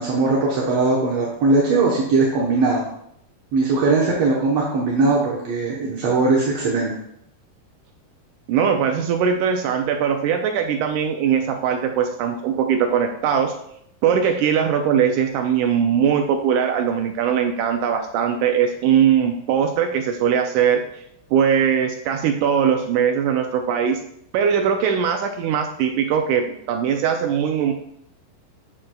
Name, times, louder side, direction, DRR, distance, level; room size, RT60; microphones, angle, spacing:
voice 1, 0.0-2.9 3.5-7.0, right 3 dB, 65° right, -5 dB, 1.7 m, -20 dB
voice 2, 8.5-13.5 14.0-20.8 21.3-24.0 24.3-27.7, right 8 dB, 80° right, 4 dB, 1.8 m, -20 dB
8.7 x 7.3 x 2.3 m, 0.73 s
omnidirectional pair, 4.1 m